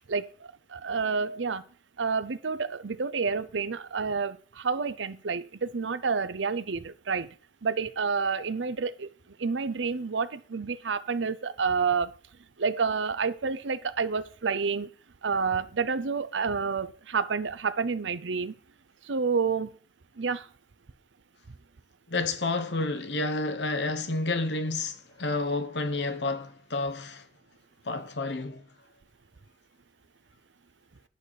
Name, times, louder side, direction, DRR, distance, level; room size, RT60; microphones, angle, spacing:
voice 1, 0.1-1.6 2.0-7.3 7.6-12.1 12.6-14.9 15.2-18.5 19.0-19.7 20.2-20.5, right 5 dB, 90° right, 0.7 m, -29 dB
voice 2, 22.1-27.2 27.9-28.6, left 3 dB, 70° left, 1.0 m, -30 dB
10.5 x 4.1 x 6.8 m
head